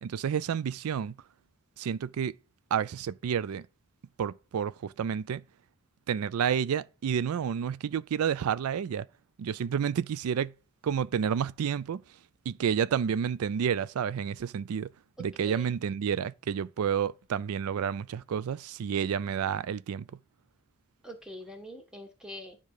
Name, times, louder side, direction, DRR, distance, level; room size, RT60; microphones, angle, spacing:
voice 1, 0.0-1.1 1.8-2.3 2.7-3.7 4.2-5.4 6.1-9.1 9.4-10.5 10.8-12.0 12.5-14.9 15.2-20.1, right 7 dB, 90° right, 0.4 m, -30 dB
voice 2, 15.2-15.7 21.0-22.6, equal, 5° right, 1.5 m, -44 dB
10.5 x 3.6 x 6.5 m
head